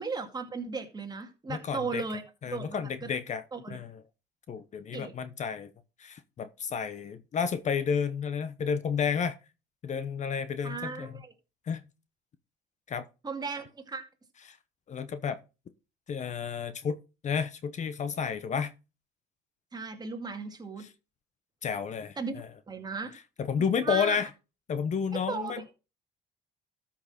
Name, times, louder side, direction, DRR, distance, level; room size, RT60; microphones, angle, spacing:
voice 1, 0.0-3.1 3.5-3.8 4.9-5.2 10.6-11.3 13.2-14.1 19.7-20.9 22.2-22.3 22.7-23.2 23.8-24.2 25.1-25.7, right 4 dB, 25° right, 2.2 m, -36 dB
voice 2, 1.5-2.0 2.4-3.4 3.7-4.0 4.5-5.7 6.0-9.4 9.8-11.1 11.7-11.8 12.9-13.1 14.9-15.4 16.1-17.0 17.2-18.7 21.6-22.5 23.4-24.3 24.7-25.7, left 6 dB, 45° left, 1.0 m, -31 dB
13.5 x 5.9 x 4.3 m
cardioid pair, 110°, 17 cm